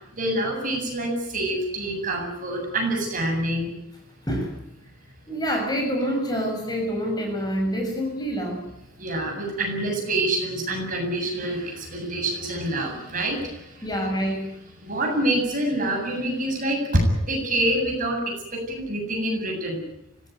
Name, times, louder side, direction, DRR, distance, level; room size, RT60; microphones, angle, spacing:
voice 1, 0.1-3.7 9.0-13.9 14.8-18.2 18.5-19.8, right 1 dB, 40° right, 2 dB, 8.0 m, -26 dB
voice 2, 5.3-8.6 13.8-14.5, equal, 20° left, 2 dB, 6.8 m, -26 dB
25.0 x 18.0 x 9.4 m, 0.83 s
head